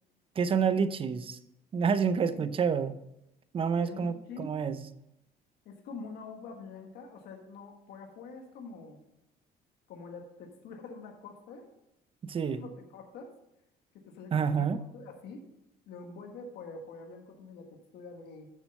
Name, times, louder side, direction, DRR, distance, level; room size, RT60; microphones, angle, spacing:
voice 1, 0.4-1.4 1.7-2.9 3.5-4.9 12.2-12.6 14.3-14.8, right 6 dB, 30° right, 13 dB, 0.5 m, -28 dB
voice 2, 2.1-2.4 3.7-4.5 5.6-9.0 9.9-11.6 12.6-13.3 13.9-14.7 14.9-15.4 15.9-18.5, left 4 dB, 75° left, 3 dB, 1.4 m, -45 dB
6.8 x 6.4 x 5.4 m, 0.85 s
cardioid pair, 110°, 17 cm